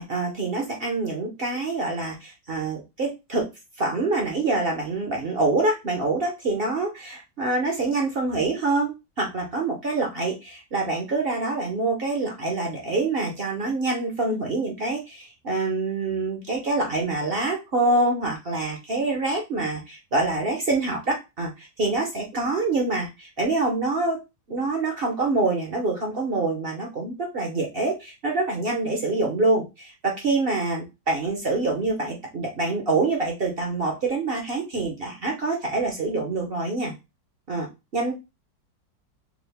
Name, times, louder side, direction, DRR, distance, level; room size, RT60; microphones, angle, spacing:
voice 1, 0.0-3.5 3.8-24.2 24.5-36.9 37.5-37.7 37.9-38.1, right 3 dB, 50° right, 1 dB, 0.7 m, -26 dB
4.9 x 2.0 x 3.4 m, 0.25 s
omnidirectional pair, 1.9 m